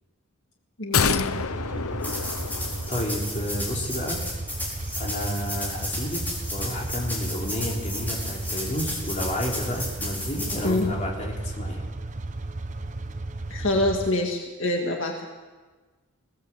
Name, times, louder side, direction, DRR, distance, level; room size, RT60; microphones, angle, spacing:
voice 1, 0.8-1.4 10.6-10.9 13.5-15.2, left 1 dB, 65° left, 1 dB, 2.0 m, -25 dB
sound 1, 0.9-3.3 3.6-3.7, left 6 dB, 85° left, 0.8 m, -27 dB
sound 2, 1.2-14.1, right 2 dB, 35° right, 0.8 m, -34 dB
sound 3, 2.0-10.8, left 1 dB, 10° left, 4.5 m, -34 dB
voice 2, 2.7-4.2 5.0-6.2 6.5-11.8, left 1 dB, 35° left, -2 dB, 3.8 m, -31 dB
21.5 x 17.0 x 7.6 m, 1.3 s
head